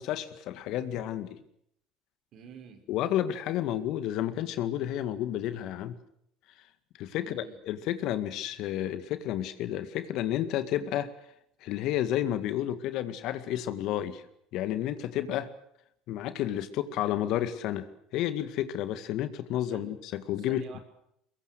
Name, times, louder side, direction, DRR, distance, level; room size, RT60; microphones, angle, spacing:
voice 1, 0.0-1.4 2.9-6.0 7.0-11.1 11.6-14.2 14.5-15.5 16.1-20.6, left 12 dB, 60° left, 12 dB, 2.0 m, -31 dB
voice 2, 2.3-2.8 7.1-7.6 19.7-19.9 20.5-20.8, right 7 dB, 55° right, 6 dB, 5.4 m, -47 dB
23.5 x 21.5 x 8.0 m, 0.74 s
hypercardioid pair, 70°, 0 cm